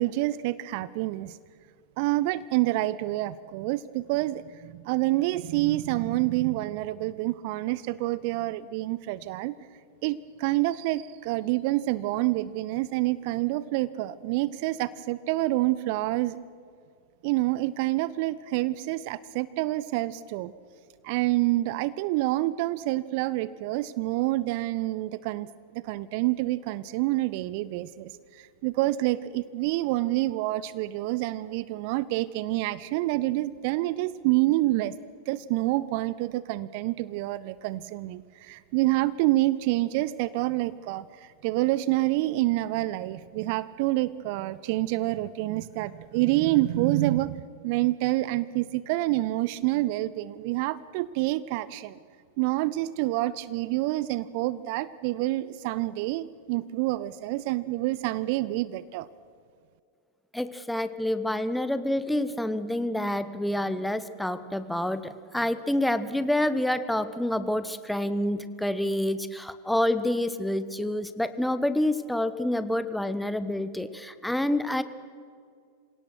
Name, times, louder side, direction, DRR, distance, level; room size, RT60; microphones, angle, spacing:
voice 1, 0.0-1.4 2.0-9.5 10.0-16.4 17.2-20.5 21.0-34.9 35.3-52.0 52.4-59.1, right 17 dB, 45° right, 19 dB, 0.5 m, -27 dB
voice 2, 60.3-74.8, left 1 dB, 5° left, 12 dB, 1.0 m, -28 dB
26.5 x 17.5 x 6.2 m, 2.3 s
figure-of-eight pair, 90°, 0 cm